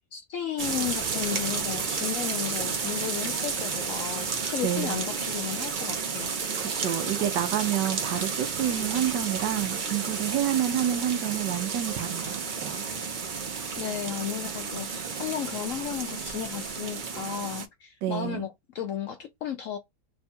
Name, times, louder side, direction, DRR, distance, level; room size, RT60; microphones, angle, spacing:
voice 1, 0.1-6.3 13.8-19.8, left 9 dB, 70° left, 0.8 m, -34 dB
sound 1, 0.6-17.7, right 5 dB, 55° right, 0.5 m, -32 dB
voice 2, 4.6-5.0 6.6-12.9 18.0-18.5, right 11 dB, 90° right, 1.3 m, -29 dB
3.5 x 2.3 x 4.1 m
omnidirectional pair, 1.8 m